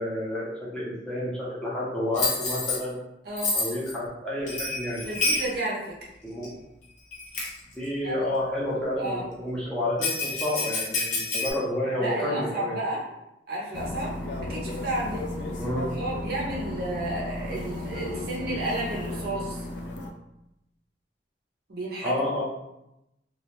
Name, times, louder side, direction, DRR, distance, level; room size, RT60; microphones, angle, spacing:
voice 1, 0.0-3.0 3.5-5.0 6.2-6.5 7.7-12.8 15.6-15.9 22.0-22.4, left 1 dB, 5° left, -8 dB, 0.6 m, -30 dB
Bell, 2.1-2.8 3.4-3.9 4.5-5.5 6.4-6.5 7.1-7.6 10.0-11.5, left 3 dB, 45° left, 0.7 m, -28 dB
voice 2, 3.2-3.6 5.0-5.9 8.0-8.1 9.0-9.2 12.0-13.0 13.5-14.1 14.5-15.2 15.9-19.6 21.7-22.1, right 1 dB, 60° right, -4 dB, 0.7 m, -32 dB
sound 1, 13.7-20.1, left 1 dB, 75° left, 0.3 m, -34 dB
2.3 x 2.0 x 2.9 m, 0.87 s
head